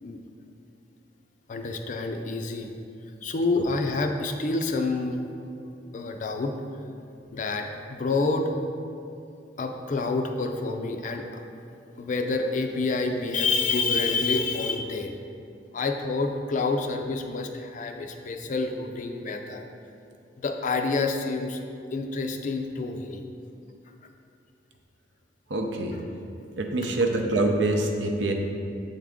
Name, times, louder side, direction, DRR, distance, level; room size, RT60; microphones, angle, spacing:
voice 1, 1.5-2.7 3.2-5.2 5.9-6.5 7.3-8.5 9.6-11.4 11.9-15.2 15.7-19.6 20.4-21.6 21.9-23.2, left 3 dB, 45° left, 5 dB, 0.4 m, -28 dB
voice 2, 25.5-26.0 26.6-28.3, right 2 dB, 75° right, 3 dB, 0.6 m, -25 dB
7.5 x 3.6 x 3.6 m, 2.5 s
head